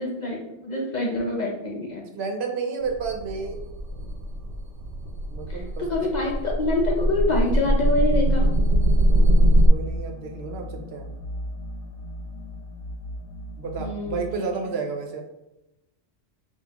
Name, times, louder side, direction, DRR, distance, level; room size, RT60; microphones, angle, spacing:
voice 1, 0.0-2.1 5.5-8.5 13.8-14.5, left 2 dB, 45° left, -1 dB, 0.6 m, -26 dB
voice 2, 2.1-3.6 5.3-6.3 9.1-11.1 13.6-15.2, right 5 dB, 65° right, 3 dB, 0.8 m, -32 dB
sound 1, 2.8-9.7, equal, 90° right, 1.0 m, -22 dB
sound 2, 8.5-14.3, right 1 dB, 90° left, 0.9 m, -35 dB
5.9 x 2.3 x 2.9 m, 0.90 s
omnidirectional pair, 1.2 m